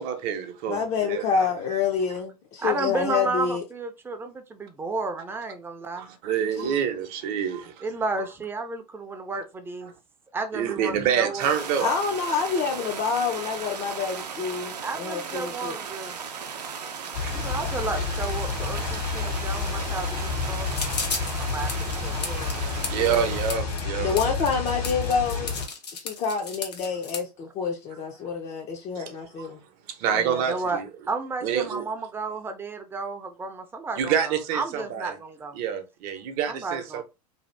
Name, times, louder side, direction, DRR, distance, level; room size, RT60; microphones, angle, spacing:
voice 1, 0.0-1.5 6.0-7.8 10.5-11.9 16.7-16.8 17.2-17.3 22.9-24.2 28.9-29.0 29.4-29.5 29.9-30.9 31.4-31.8 34.0-35.1 35.5-37.0, right 8 dB, 45° right, 0.7 m, -27 dB
voice 2, 0.7-3.6 11.8-15.7 22.9-23.2 24.0-25.5 25.9-29.6, left 6 dB, 35° left, 0.6 m, -27 dB
voice 3, 2.6-6.8 7.8-9.9 10.3-11.5 14.8-16.2 17.3-20.8 21.5-23.1 30.1-30.8 31.1-35.6 36.4-37.0, right 3 dB, 10° right, 0.5 m, -33 dB
sound 1, 11.4-23.6, right 6 dB, 80° right, 0.6 m, -36 dB
sound 2, 17.1-25.7, left 4 dB, 65° left, 1.3 m, -30 dB
sound 3, 20.7-27.2, left 5 dB, 80° left, 0.8 m, -34 dB
2.7 x 2.3 x 3.2 m
hypercardioid pair, 90°, 21 cm